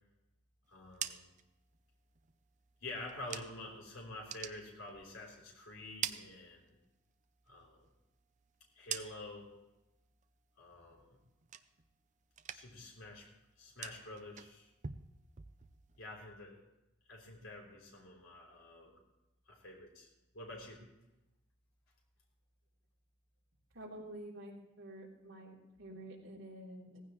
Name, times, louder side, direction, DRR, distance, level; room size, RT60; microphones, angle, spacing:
voice 1, 0.7-1.3 2.8-6.8 7.5-7.8 8.7-9.5 10.6-11.2 12.5-13.3 13.6-14.7 16.0-16.6 17.1-19.0 19.5-20.1 20.3-20.8, left 2 dB, 80° left, -2 dB, 3.6 m, -48 dB
sound 1, 0.7-3.8 4.1-5.4 5.7-7.0 7.4-9.5 9.9-10.4 10.7-12.0 12.3-12.9 13.2-16.0, right 8 dB, 35° right, 0.6 m, -47 dB
voice 2, 23.7-27.0, right 1 dB, 70° right, -3 dB, 3.3 m, -49 dB
17.0 x 15.5 x 3.1 m, 0.96 s
head